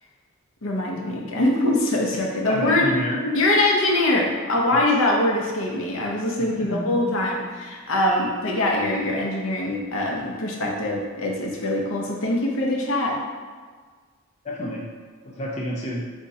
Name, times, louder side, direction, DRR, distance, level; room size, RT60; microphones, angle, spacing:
voice 1, 0.6-2.9 3.2-13.2, left 1 dB, 75° left, -1 dB, 0.7 m, -23 dB
voice 2, 2.1-3.2 4.7-4.9 6.4-7.2 14.4-14.9 15.2-16.1, equal, 35° left, -2 dB, 0.5 m, -30 dB
3.5 x 2.7 x 4.1 m, 1.5 s
head